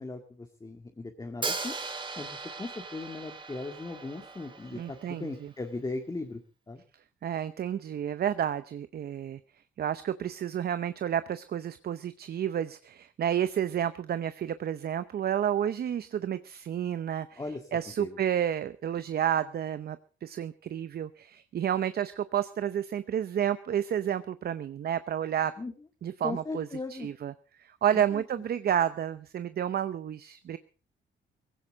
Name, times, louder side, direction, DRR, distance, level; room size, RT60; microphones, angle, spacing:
voice 1, 0.0-1.7 2.2-6.4 6.7-6.8 17.4-17.7 18.0-18.2 25.6-25.7 26.2-27.1 27.9-28.2, left 3 dB, 20° left, 3 dB, 2.0 m, -38 dB
Hi-hat, 1.4-5.4, right 3 dB, 25° right, 1.8 m, -38 dB
voice 2, 4.7-5.5 7.2-9.4 9.8-17.4 17.7-25.5 26.0-27.3 27.6-30.6, right 9 dB, 50° right, 13 dB, 0.7 m, -30 dB
17.5 x 16.5 x 3.9 m, 0.36 s
cardioid pair, 90°, 20 cm